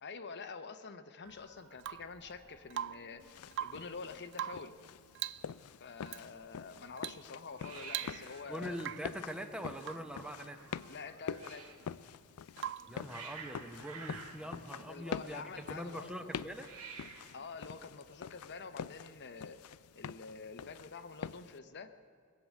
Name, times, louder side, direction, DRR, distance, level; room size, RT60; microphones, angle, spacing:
voice 1, 0.0-3.2 3.6-4.7 5.8-8.8 10.9-11.7 14.9-16.3 17.3-19.6 20.0-21.9, left 4 dB, 50° left, 9 dB, 0.8 m, -47 dB
Hiss, 1.2-18.6, right 5 dB, 85° right, 1.7 m, -54 dB
Rain / Water tap faucet / Drip, 1.8-2.2 2.7-3.2 3.5-3.9 4.3-4.8 5.1-5.5 6.1-6.3 7.0-7.3 7.5-7.6 7.9-8.4 8.8-9.2 9.8-10.1 12.6-13.0 14.9-15.0, right 11 dB, 55° right, 0.3 m, -41 dB
sound 1, 3.2-21.6, left 7 dB, 75° left, 0.4 m, -46 dB
voice 2, 8.5-10.7 12.9-16.7, equal, 5° right, 6 dB, 0.8 m, -43 dB
21.0 x 7.8 x 8.3 m, 2.2 s
head